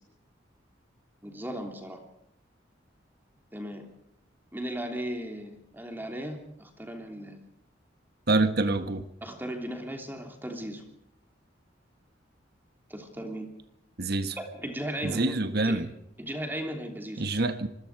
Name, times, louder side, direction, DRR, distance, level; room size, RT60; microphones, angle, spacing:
voice 1, 1.2-2.0 3.5-3.9 4.5-7.4 9.2-10.9 12.9-13.5 14.4-15.8 16.2-17.2, right 1 dB, 10° right, 3.2 m, -36 dB
voice 2, 8.3-9.0 14.0-14.4 15.0-15.9 17.2-17.7, right 2 dB, 60° right, 1.5 m, -26 dB
26.0 x 21.0 x 4.9 m
head